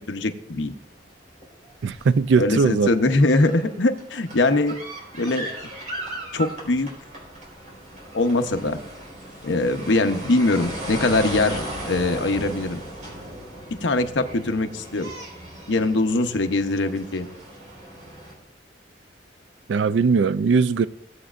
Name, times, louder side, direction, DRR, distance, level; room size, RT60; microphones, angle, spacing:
voice 1, 0.1-0.7 2.4-4.8 5.2-5.5 6.3-6.9 8.1-8.8 9.4-12.8 13.8-15.1 15.7-17.3, left 2 dB, 75° left, 0.8 m, -22 dB
sound 1, 0.8-1.0 1.3-18.3, right 1 dB, 40° right, 4.1 m, -37 dB
voice 2, 1.8-2.9 19.7-20.9, right 5 dB, 70° right, 0.4 m, -19 dB
17.5 x 7.9 x 2.5 m
head